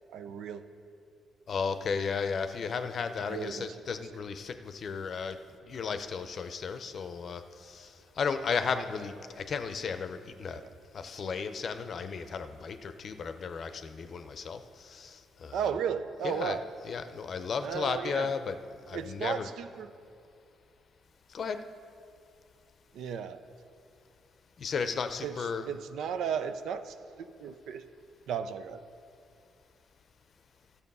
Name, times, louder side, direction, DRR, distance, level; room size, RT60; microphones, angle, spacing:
voice 1, 0.1-0.6 3.3-3.7 10.5-10.7 15.5-16.6 17.6-18.3 18.9-19.9 22.9-23.4 25.2-25.4 25.7-27.8 28.3-28.8, right 7 dB, 75° right, 10 dB, 0.5 m, -34 dB
voice 2, 1.5-5.4 5.7-10.6 10.9-15.8 16.2-18.6 18.9-19.5 21.3-21.6 24.6-25.7, left 5 dB, 50° left, 10 dB, 0.6 m, -34 dB
12.5 x 6.9 x 5.5 m, 2.4 s
cardioid pair, 90°, 0 cm